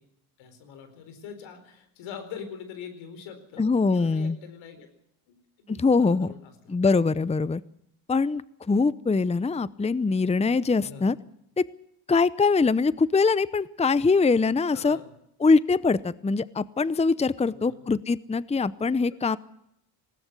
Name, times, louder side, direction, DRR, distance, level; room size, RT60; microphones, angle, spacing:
voice 1, 0.4-4.9 5.3-6.9 10.7-11.1 14.7-15.1 17.4-17.9, left 7 dB, 90° left, 9 dB, 4.5 m, -44 dB
voice 2, 3.6-4.4 5.7-6.3 6.7-7.6 8.1-8.4 8.7-11.2 11.6-11.7 12.1-15.0 15.4-19.4, left 4 dB, 15° left, 18 dB, 0.7 m, -23 dB
20.0 x 18.0 x 8.2 m, 0.75 s
supercardioid pair, 70°, 46 cm